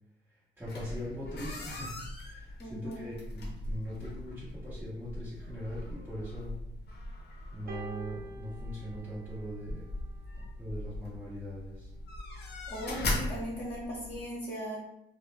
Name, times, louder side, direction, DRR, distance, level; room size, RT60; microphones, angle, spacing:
sound 1, 0.6-14.2, left 1 dB, 55° left, 0.6 m, -40 dB
voice 1, 0.6-1.9 2.2-6.5 7.5-9.9 10.6-11.9, equal, 10° right, -11 dB, 0.9 m, -41 dB
voice 2, 2.6-3.0 12.7-14.8, equal, 25° left, -8 dB, 0.9 m, -38 dB
sound 2, 7.7-10.2 11.2-11.3, right 1 dB, 50° right, 0.5 m, -47 dB
2.2 x 2.1 x 3.1 m, 0.87 s
cardioid pair, 90°, 20 cm